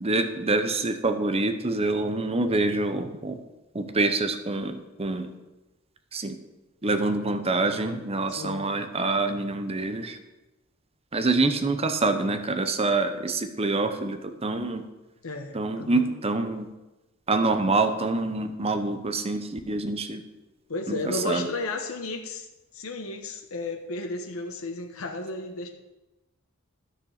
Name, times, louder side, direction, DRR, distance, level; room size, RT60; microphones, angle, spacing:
voice 1, 0.0-3.4 3.7-5.3 6.1-6.4 6.8-10.2 11.1-14.8 15.5-16.7 17.3-20.2 20.9-21.5, right 3 dB, 30° right, 8 dB, 0.9 m, -26 dB
voice 2, 8.3-8.7 15.2-16.1 20.7-22.5 22.7-25.7, left 3 dB, 85° left, 3 dB, 1.1 m, -33 dB
13.0 x 6.6 x 6.5 m, 1.0 s
head